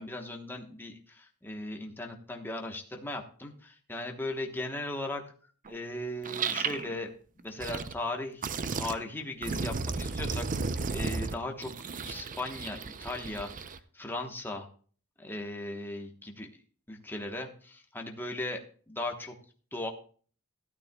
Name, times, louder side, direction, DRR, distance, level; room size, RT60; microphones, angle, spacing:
voice 1, 0.0-5.2 5.7-7.1 7.3-11.7 12.0-13.5 13.9-14.7 15.2-16.5 16.9-18.6 18.9-19.3 19.7-19.9, left 2 dB, 10° left, 1 dB, 1.1 m, -37 dB
sound 1, 5.6-5.7 6.2-6.9 7.4-7.9 8.4-8.9 9.4-13.8, right 4 dB, 35° right, 0.5 m, -34 dB
13.5 x 12.0 x 2.3 m, 0.43 s
head